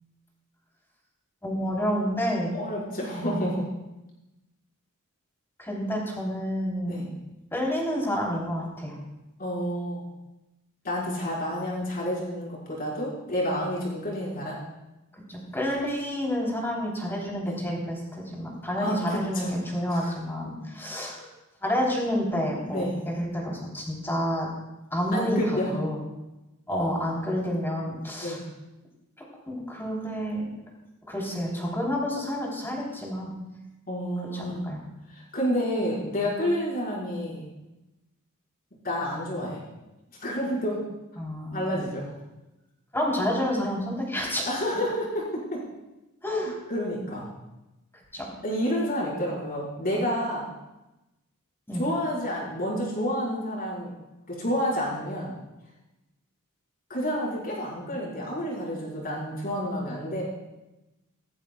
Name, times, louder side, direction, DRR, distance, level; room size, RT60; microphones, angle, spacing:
voice 1, 1.4-2.5 3.2-3.5 5.6-7.0 7.5-8.9 15.3-21.2 21.6-24.5 24.9-26.0 26.7-28.4 29.5-30.4 31.1-33.3 34.3-34.8 41.2-41.9 42.9-44.5 46.2-46.6 48.1-48.3 51.7-51.8, equal, 10° left, -2 dB, 3.8 m, -29 dB
voice 2, 2.5-3.6 6.9-7.0 9.4-10.1 10.8-14.6 17.4-17.6 18.8-19.5 19.9-20.1 22.7-23.0 25.1-25.8 26.7-27.2 28.2-28.4 33.9-34.7 35.1-37.4 38.8-39.6 40.2-40.8 41.5-42.1 44.4-45.6 46.7-47.3 48.4-50.4 51.7-53.9 54.3-55.4 56.9-60.2, equal, 45° left, -5 dB, 5.5 m, -29 dB
17.5 x 14.0 x 2.4 m, 1.0 s
head